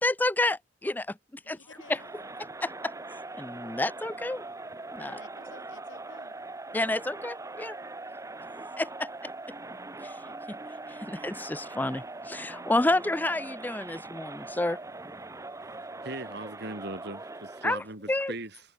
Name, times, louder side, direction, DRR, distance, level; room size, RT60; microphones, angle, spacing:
voice 1, 0.0-1.2 1.5-1.6 1.9-2.0 2.6-2.9 3.3-4.4 4.9-5.2 6.7-7.8 8.8-9.1 10.0-10.2 10.5-10.6 10.9-14.8 17.6-18.3, left 2 dB, 10° left, 0.5 m, -29 dB
voice 2, 1.4-2.3 5.0-6.3, left 3 dB, 80° left, 6.3 m, -53 dB
Crowd, 1.8-17.9, right 2 dB, 15° right, 0.8 m, -42 dB
voice 3, 16.0-18.6, right 2 dB, 60° right, 5.8 m, -39 dB
head